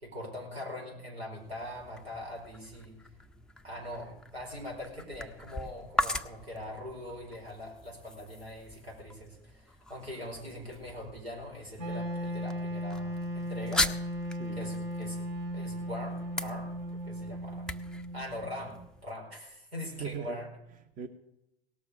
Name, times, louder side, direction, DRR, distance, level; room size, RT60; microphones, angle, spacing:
voice 1, 0.0-3.0 3.6-13.9 14.5-15.2 15.5-16.7 17.0-17.7 18.1-20.5, left 1 dB, 85° right, -1 dB, 4.8 m, -42 dB
sound 1, 1.3-19.1, left 1 dB, ahead, 0.5 m, -40 dB
Wind instrument woodwind instrument, 11.8-18.8, equal, 55° right, 3.4 m, -36 dB
voice 2, 14.3-14.7 19.8-21.1, right 7 dB, 25° right, 8 dB, 1.0 m, -42 dB
18.0 x 7.0 x 6.6 m, 0.87 s
figure-of-eight pair, 95°, 31 cm